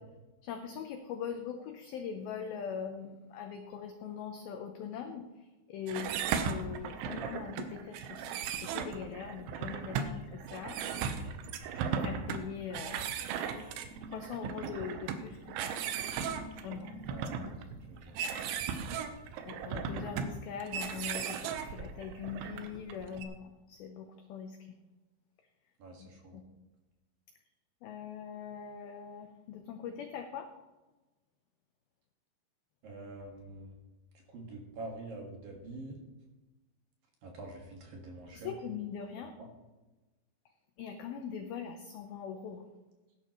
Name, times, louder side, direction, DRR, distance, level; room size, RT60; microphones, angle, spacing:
voice 1, 0.4-10.8 11.7-16.0 16.6-17.0 17.3-17.7 19.5-24.8 26.0-26.4 27.8-30.5 38.3-39.3 40.8-42.7, left 7 dB, 80° left, 5 dB, 2.1 m, -42 dB
sound 1, 5.9-23.2, right 7 dB, 80° right, 3.2 m, -37 dB
voice 2, 17.1-17.5 17.9-18.6 25.8-26.4 32.8-33.7 34.3-36.0 37.2-38.5 39.2-39.3, right 2 dB, 60° right, 0 dB, 3.1 m, -46 dB
16.0 x 11.0 x 3.1 m, 1.1 s
omnidirectional pair, 5.3 m